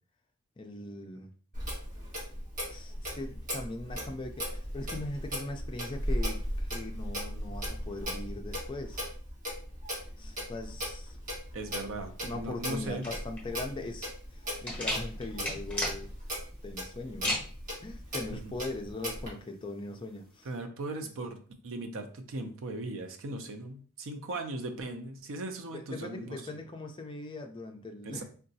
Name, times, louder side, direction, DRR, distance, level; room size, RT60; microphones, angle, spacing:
voice 1, 0.6-1.3 2.7-9.0 10.2-11.2 12.2-16.2 16.6-17.4 17.8-20.5 20.9-21.2 25.7-28.2, left 2 dB, 25° left, 4 dB, 0.4 m, -40 dB
Clock, 1.5-19.3, equal, 40° right, 1.3 m, -37 dB
voice 2, 11.5-13.0 18.3-18.5 20.4-26.4 28.1-28.2, right 2 dB, 65° right, 6 dB, 0.5 m, -38 dB
sound 1, 13.0-20.6, left 1 dB, 5° left, 0.9 m, -37 dB
3.7 x 2.2 x 2.7 m, 0.41 s
head